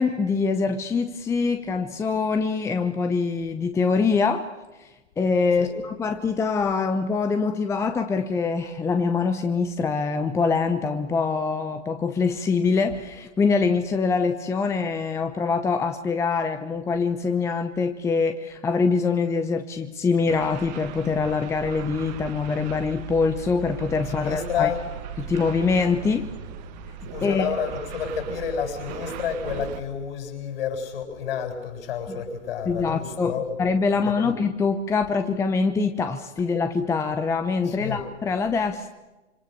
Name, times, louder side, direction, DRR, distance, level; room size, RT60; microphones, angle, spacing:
voice 1, 0.0-4.5 4.8-24.7 25.2-26.3 27.2-27.5 32.1-32.2 32.6-38.9, left 4 dB, 10° left, 8 dB, 0.8 m, -24 dB
sound 1, 20.3-29.8, right 9 dB, 35° right, 1.8 m, -38 dB
voice 2, 24.2-24.8 27.1-33.6 34.2-34.3 37.7-38.0, left 7 dB, 55° left, 3 dB, 7.5 m, -30 dB
26.0 x 25.5 x 6.7 m, 1.1 s
figure-of-eight pair, 120°, 35 cm